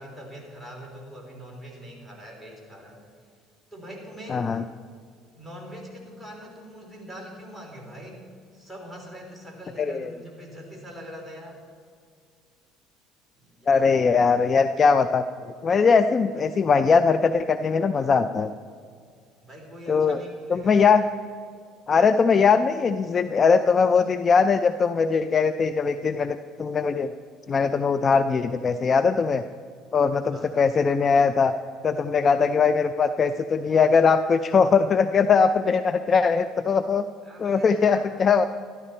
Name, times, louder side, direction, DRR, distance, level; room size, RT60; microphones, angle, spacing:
voice 1, 0.0-3.0 3.7-4.5 5.4-11.6 13.4-14.0 19.4-21.0 30.3-30.5 37.2-38.1, equal, ahead, -2 dB, 3.5 m, -43 dB
voice 2, 4.3-4.6 9.8-10.1 13.7-15.2 15.6-18.5 19.9-20.2 20.5-21.0 21.9-27.1 27.5-29.4 29.9-31.5 31.8-37.0 37.4-38.5, left 5 dB, 35° left, 11 dB, 0.4 m, -20 dB
12.5 x 12.0 x 4.4 m, 2.2 s
supercardioid pair, 100°, 0 cm